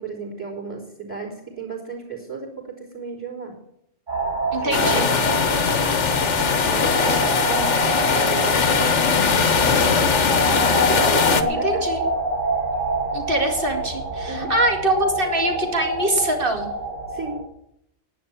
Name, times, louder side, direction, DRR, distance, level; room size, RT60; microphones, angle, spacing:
voice 1, 0.0-3.5 4.6-6.0 6.7-9.1 9.4-10.1 10.9-11.9 14.3-14.5 17.1-17.4, right 5 dB, 5° right, -5 dB, 4.0 m, -34 dB
sound 1, 4.1-17.4, right 2 dB, 90° right, 5.6 m, -26 dB
voice 2, 4.5-5.1 11.5-12.0 13.1-16.7, right 2 dB, 50° right, 4 dB, 2.4 m, -24 dB
sound 2, 4.7-11.4, left 5 dB, 70° left, 1.4 m, -20 dB
11.0 x 9.4 x 8.8 m, 0.75 s
omnidirectional pair, 1.2 m